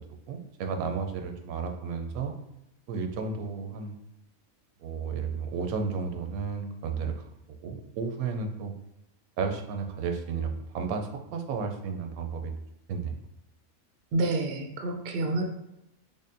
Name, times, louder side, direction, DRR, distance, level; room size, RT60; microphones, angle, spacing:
voice 1, 0.3-2.4 2.9-4.0 4.8-7.3 7.6-8.7 9.4-12.5 12.9-13.2, right 5 dB, 85° right, 4 dB, 1.0 m, -33 dB
voice 2, 14.1-15.4, right 2 dB, 60° right, 3 dB, 0.6 m, -28 dB
5.1 x 2.1 x 2.5 m, 0.86 s
omnidirectional pair, 1.5 m